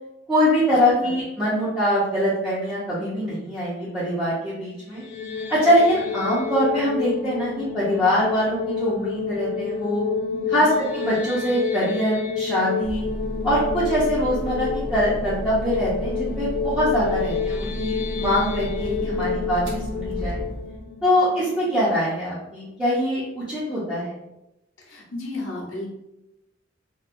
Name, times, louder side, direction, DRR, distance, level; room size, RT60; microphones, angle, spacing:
voice 1, 0.3-5.0 5.5-10.0 10.5-13.0 13.4-20.5 21.0-24.1, equal, 5° right, -11 dB, 0.6 m, -23 dB
voice 2, 0.8-1.1 10.3-10.7 19.0-19.3 24.8-25.9, left 2 dB, 85° left, -2 dB, 0.8 m, -34 dB
sound 1, 4.8-21.9, left 6 dB, 50° left, 0.4 m, -29 dB
sound 2, 12.8-20.9, equal, 75° right, 0.6 m, -32 dB
2.8 x 2.2 x 2.5 m, 0.90 s
head